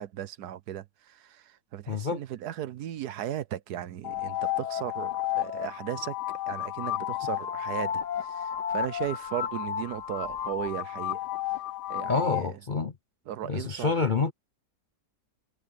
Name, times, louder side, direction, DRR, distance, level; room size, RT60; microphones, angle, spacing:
voice 1, 0.0-6.2 6.5-11.2 11.9-12.6 13.3-14.1, right 11 dB, 75° right, 1.3 m, -36 dB
voice 2, 1.9-2.2 12.1-12.9 13.5-14.3, left 4 dB, 45° left, 0.7 m, -27 dB
sound 1, 4.0-12.5, left 11 dB, 80° left, 1.5 m, -32 dB
omnidirectional pair, 1.8 m